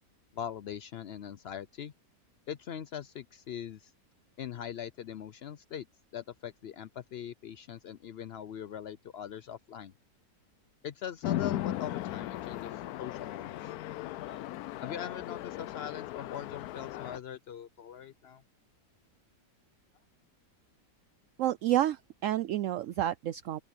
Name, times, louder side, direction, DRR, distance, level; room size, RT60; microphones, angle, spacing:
voice 1, 0.3-1.9 2.5-3.9 4.4-5.9 6.1-9.9 10.8-13.7 14.2-14.4 14.8-18.4, left 9 dB, 85° left, 0.5 m, -41 dB
Chatter / Traffic noise roadway noise / Train, 11.2-17.2, left 14 dB, 70° left, 1.0 m, -37 dB
voice 2, 21.4-23.6, right 12 dB, 75° right, 0.7 m, -29 dB
open air
omnidirectional pair, 1.8 m